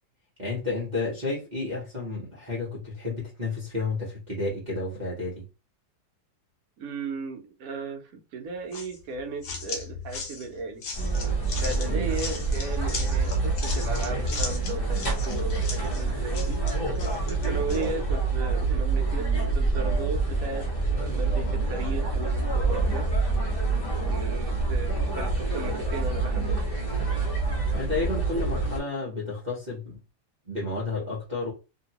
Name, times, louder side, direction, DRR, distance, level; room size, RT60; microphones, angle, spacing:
voice 1, 0.4-5.4 11.9-12.2 27.7-30.0 30.4-31.5, left 3 dB, 35° right, 0.8 m, -31 dB
voice 2, 6.8-10.8 11.6-16.6 17.3-23.1 24.1-26.6, right 3 dB, 65° right, 1.0 m, -36 dB
sound 1, 8.7-17.9, left 4 dB, 65° left, 1.1 m, -38 dB
sound 2, 10.9-28.8, right 3 dB, 35° left, 1.3 m, -27 dB
2.9 x 2.7 x 2.8 m
omnidirectional pair, 1.8 m